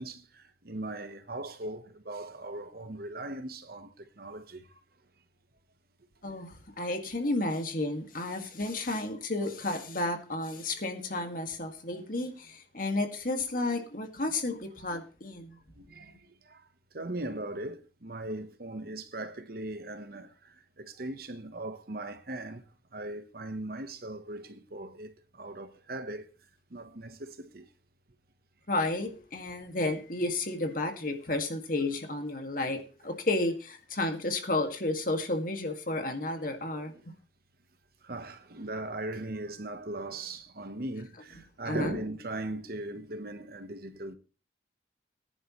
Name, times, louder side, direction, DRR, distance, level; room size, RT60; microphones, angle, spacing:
voice 1, 0.0-4.8 8.4-8.5 15.8-16.2 16.5-16.6 16.9-20.3 20.8-22.6 22.9-26.2 26.7-27.7 32.7-33.1 36.9-37.0 38.0-44.1, right 2 dB, 55° right, 1.2 m, -39 dB
voice 2, 6.2-15.6 28.7-32.8 33.0-37.1 41.7-42.0, left 2 dB, 50° left, 2.1 m, -32 dB
18.5 x 10.5 x 3.2 m
head